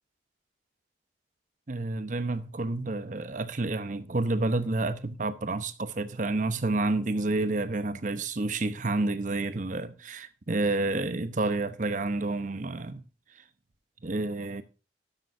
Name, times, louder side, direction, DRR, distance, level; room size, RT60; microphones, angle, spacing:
voice 1, 1.7-13.0 14.0-14.6, right 2 dB, 45° right, 0.8 m, -29 dB
12.5 x 11.5 x 2.6 m
head